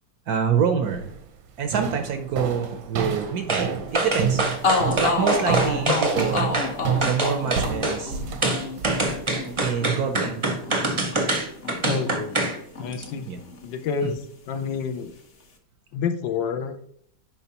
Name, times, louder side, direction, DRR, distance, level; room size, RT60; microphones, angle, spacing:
voice 1, 0.3-1.1 1.6-4.4 4.8-6.5 7.0-8.2 9.6-10.4 13.3-13.4, right 7 dB, 65° right, 7 dB, 1.0 m, -26 dB
sound 1, 0.9-1.2 1.7-9.7, right 6 dB, 85° right, 1.7 m, -29 dB
sound 2, 3.5-3.7 3.9-6.7 7.0-8.0 8.4-12.6 12.9-13.0, right 2 dB, 25° right, 0.6 m, -25 dB
sound 3, 4.2-4.3 4.6-12.5 12.8-13.9, left 3 dB, 40° left, 0.9 m, -29 dB
voice 2, 11.8-13.3 13.6-15.1 15.9-16.8, left 6 dB, 75° left, 7 dB, 1.4 m, -29 dB
11.0 x 4.4 x 2.9 m, 0.65 s
omnidirectional pair, 2.1 m